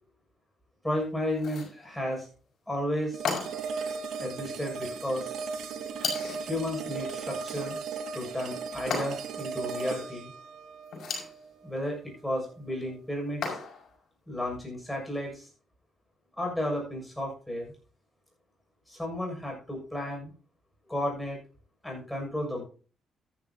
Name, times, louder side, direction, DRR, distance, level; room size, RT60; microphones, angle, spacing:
voice 1, 0.8-2.3 2.7-3.2 4.2-5.4 6.4-7.8 8.1-10.3 11.6-13.6 14.3-15.4 16.4-17.7 18.9-20.3 20.9-21.4 21.8-22.6, left 1 dB, 5° left, 0 dB, 6.9 m, -33 dB
sound 1, 1.4-1.8 3.2-3.8 6.0-6.5 8.9-9.4 10.9-11.4 13.4-13.9, left 5 dB, 65° left, 5.2 m, -34 dB
sound 2, 3.1-12.2, right 5 dB, 70° right, 1.4 m, -37 dB
13.5 x 11.0 x 2.9 m, 0.38 s
cardioid pair, 90°, 0 cm